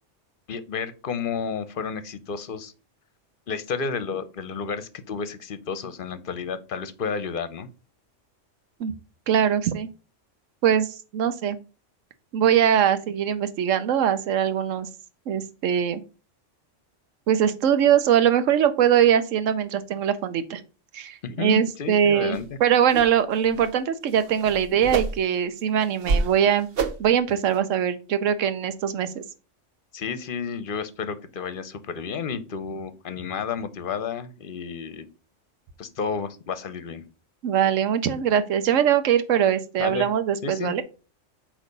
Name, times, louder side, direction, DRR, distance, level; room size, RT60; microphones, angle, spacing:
voice 1, 0.5-2.7 3.5-7.7 21.2-22.6 29.9-35.1 35.8-37.1 39.8-40.1 40.4-40.8, left 6 dB, 50° left, 13 dB, 0.9 m, -31 dB
voice 2, 9.3-9.9 10.6-11.6 12.3-14.9 15.3-16.0 17.3-20.6 20.9-26.7 27.0-29.2 37.4-40.8, right 9 dB, 85° right, 10 dB, 1.1 m, -22 dB
sound 1, 22.3-22.5 22.9-23.1 23.4-23.7 24.1-25.4 25.8-26.4 26.7-27.1 27.5-27.6, right 4 dB, 55° right, 0.9 m, -28 dB
8.2 x 3.1 x 5.3 m, 0.33 s
omnidirectional pair, 1.3 m